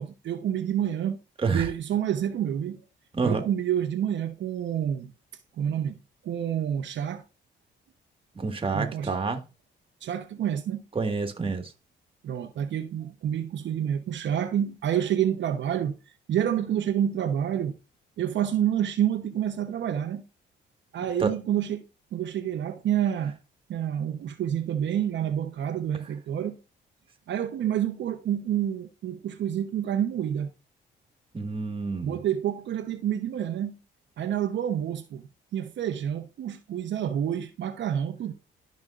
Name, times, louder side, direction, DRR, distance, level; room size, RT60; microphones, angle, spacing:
voice 1, 0.0-1.2 1.5-2.8 3.2-5.1 5.6-7.2 8.7-9.2 10.0-10.8 12.2-16.0 16.3-17.7 18.2-20.2 20.9-21.8 22.1-23.4 23.7-26.6 27.3-30.5 32.0-33.8 34.2-35.2 35.5-38.3, right 10 dB, 65° right, 0.9 m, -28 dB
voice 2, 8.4-9.4 11.0-11.7 21.2-21.3 31.3-32.2, right 4 dB, 25° right, 1.7 m, -28 dB
12.5 x 5.2 x 2.5 m
cardioid pair, 90°, 20 cm